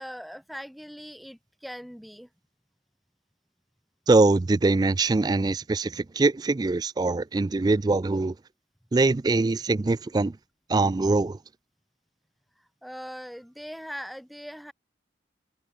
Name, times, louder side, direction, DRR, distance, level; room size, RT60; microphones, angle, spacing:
voice 1, 0.0-2.3 12.8-14.7, equal, ahead, 1.6 m, -40 dB
voice 2, 4.1-8.3 8.9-10.3 10.7-11.4, right 3 dB, 20° right, 0.3 m, -23 dB
head